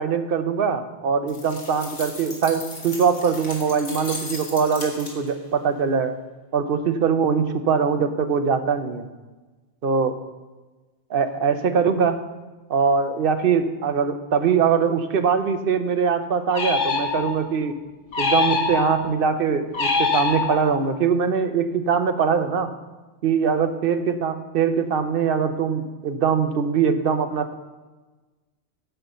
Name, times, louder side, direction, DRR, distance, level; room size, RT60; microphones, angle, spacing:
voice 1, 0.0-6.1 6.5-9.1 9.8-10.1 11.1-12.2 12.7-17.8 18.2-22.7 23.2-27.5, right 6 dB, 55° right, 8 dB, 0.8 m, -22 dB
sound 1, 1.3-5.5, left 2 dB, 80° left, 1.9 m, -37 dB
sound 2, 16.5-17.6 18.1-19.2 19.7-20.9, left 4 dB, 45° left, 0.9 m, -24 dB
7.9 x 5.6 x 7.8 m, 1.2 s
omnidirectional pair, 1.2 m